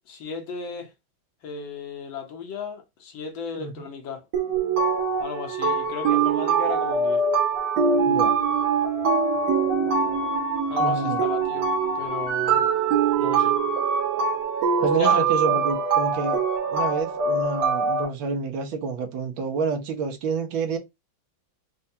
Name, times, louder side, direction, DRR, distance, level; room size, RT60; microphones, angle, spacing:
voice 1, 0.1-0.9 1.4-4.3 5.2-7.2 10.7-11.7 12.0-12.7 13.2-13.6 14.8-15.3, left 5 dB, 75° left, 1.7 m, -35 dB
sound 1, 4.3-18.1, right 5 dB, 60° right, 1.6 m, -23 dB
voice 2, 10.8-11.2 14.8-16.4 16.7-20.8, right 4 dB, 80° right, 1.5 m, -28 dB
4.5 x 2.2 x 2.7 m
omnidirectional pair, 2.2 m